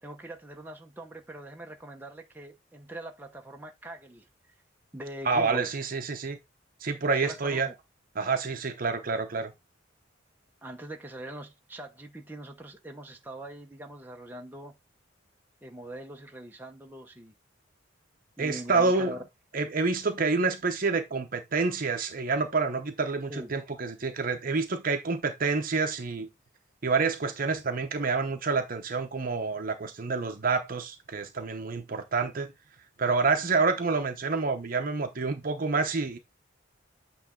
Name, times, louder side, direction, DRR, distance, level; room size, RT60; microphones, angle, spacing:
voice 1, 0.0-4.3 4.9-5.7 7.2-7.7 10.6-14.8 15.6-17.3 18.4-19.2 23.3-23.5, right 1 dB, 10° right, 0.8 m, -42 dB
voice 2, 5.2-6.4 6.8-7.7 8.1-9.5 18.4-19.2 19.5-26.3 26.8-32.5 33.0-36.2, right 4 dB, 45° right, 0.8 m, -28 dB
8.9 x 3.2 x 3.8 m
head